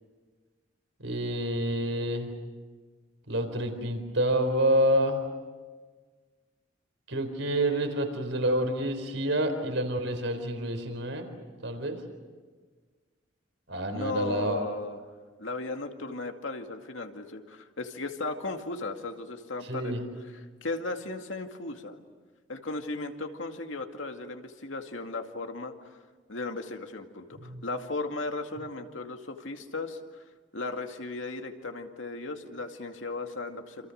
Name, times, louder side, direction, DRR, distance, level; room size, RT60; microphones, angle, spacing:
voice 1, 1.0-2.3 3.3-5.2 7.1-11.3 11.6-12.0 13.7-14.6 19.6-20.1 27.4-27.6, right 1 dB, 80° right, 6 dB, 4.0 m, -28 dB
voice 2, 13.9-15.0 15.4-20.0 20.6-22.0 22.5-25.7 26.3-30.0 30.5-33.9, left 3 dB, 90° left, 4 dB, 2.3 m, -36 dB
28.0 x 27.5 x 6.6 m, 1.4 s
head